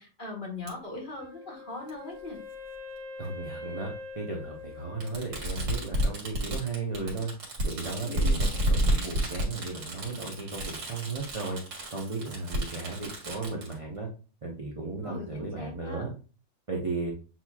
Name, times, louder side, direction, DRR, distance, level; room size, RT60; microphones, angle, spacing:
voice 1, 0.0-2.4 8.0-8.5 15.0-16.0, left 2 dB, 30° left, -2 dB, 1.6 m, -40 dB
Fireworks, 0.7-0.8 1.9-2.0 3.3-3.4 5.0-13.7, right 1 dB, 75° right, 2.1 m, -30 dB
Wind instrument woodwind instrument, 1.2-6.0, left 3 dB, 60° right, 1.0 m, -44 dB
voice 2, 3.2-3.9 4.1-7.3 7.6-11.6 11.9-14.1 14.4-16.1 16.7-17.1, right 3 dB, 35° right, -2 dB, 0.5 m, -35 dB
7.7 x 3.0 x 2.3 m, 0.35 s
omnidirectional pair, 1.9 m